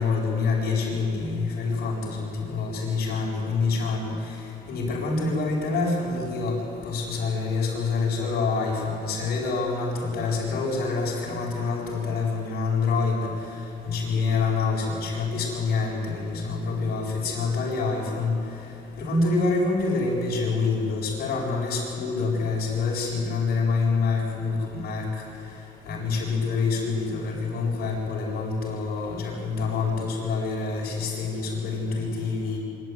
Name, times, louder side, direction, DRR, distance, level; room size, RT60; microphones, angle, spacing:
voice 1, 0.0-4.1 4.7-6.6 6.8-13.3 13.8-18.4 19.0-25.0 25.8-32.6, left 4 dB, 65° left, -3 dB, 7.1 m, -26 dB
24.0 x 13.0 x 9.4 m, 2.7 s
cardioid pair, 110°, 17 cm